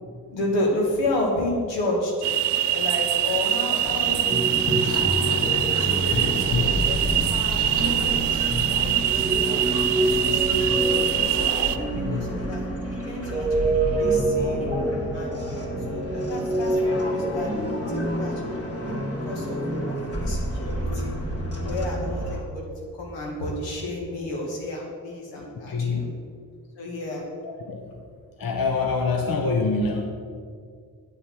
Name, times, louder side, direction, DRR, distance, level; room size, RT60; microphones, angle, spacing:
voice 1, 0.0-2.1 2.7-5.1 5.8-10.6 11.0-14.6 15.1-17.5 17.9-19.0 19.3-19.6 19.8-21.1 21.6-26.1 26.8-27.3, left 1 dB, 85° left, -1 dB, 2.3 m, -31 dB
sound 1, 2.2-11.8, right 11 dB, 75° right, 0.6 m, -24 dB
sound 2, 3.7-22.4, equal, 35° left, 3.0 m, -31 dB
sound 3, 4.3-20.0, right 2 dB, 15° right, 2.3 m, -28 dB
voice 2, 6.1-6.6 12.0-12.2 15.8-15.9 25.4-26.0 27.4-27.9 28.4-30.0, left 4 dB, 55° left, 3 dB, 1.1 m, -26 dB
9.0 x 7.2 x 6.2 m, 2.1 s
supercardioid pair, 50°, 42 cm